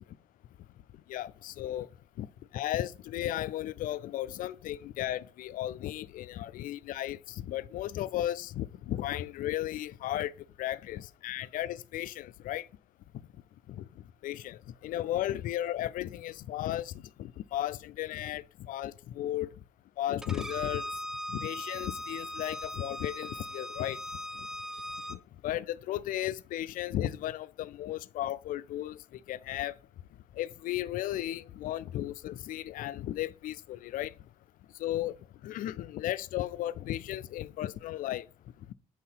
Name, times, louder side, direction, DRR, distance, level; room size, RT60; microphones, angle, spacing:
voice 1, 1.1-1.9 2.2-2.3 2.5-10.3 10.6-12.7 13.7-13.8 14.2-19.5 20.0-20.8 21.3-24.0 25.1-29.0 29.3-29.7 30.4-34.1 34.8-35.1 35.4-38.2, left 13 dB, 70° left, 0.4 m, -35 dB
Bowed string instrument, 20.2-25.2, left 1 dB, 5° right, 0.4 m, -39 dB
6.6 x 2.8 x 5.5 m
supercardioid pair, 70°, 14 cm